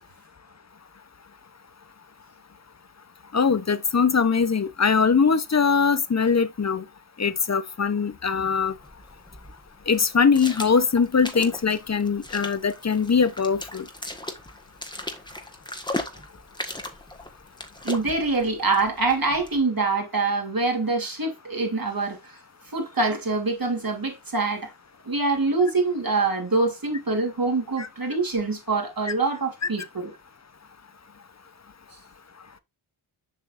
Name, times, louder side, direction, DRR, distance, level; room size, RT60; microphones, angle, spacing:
voice 1, 3.3-6.8 7.2-8.7 9.9-13.8 27.8-27.9, left 5 dB, 35° left, 0.8 m, -22 dB
sound 1, 8.6-19.6, left 1 dB, 10° left, 1.6 m, -38 dB
voice 2, 17.8-22.4 22.7-24.7 25.0-30.1, right 3 dB, 45° right, 3.0 m, -25 dB
7.3 x 5.7 x 2.5 m
cardioid pair, 45°, 50 cm